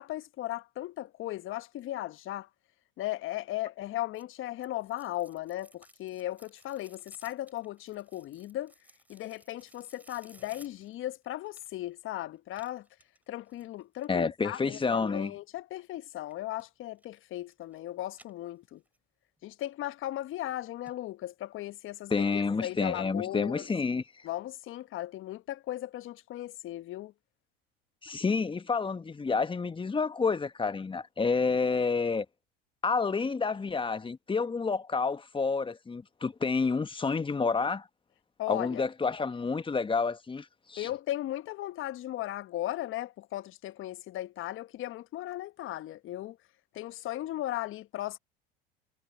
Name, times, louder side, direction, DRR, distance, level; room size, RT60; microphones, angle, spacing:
voice 1, 0.0-2.5 3.0-8.7 9.1-12.9 13.3-18.8 19.4-23.7 24.2-27.1 38.4-38.9 40.8-46.4 46.7-48.2, left 14 dB, 45° left, 1.1 m, -37 dB
sound 1, 4.1-11.9 12.5-14.2 16.2-16.7 17.0-17.8 18.1-19.0 19.4-19.5 20.1-20.2 20.5-20.6 20.9-21.0 21.3-21.4, right 1 dB, 5° right, 6.0 m, -60 dB
voice 2, 14.1-15.3 22.1-24.0 28.0-32.2 32.8-37.9 38.5-40.9, left 4 dB, 15° left, 1.4 m, -29 dB
hypercardioid pair, 70°, 29 cm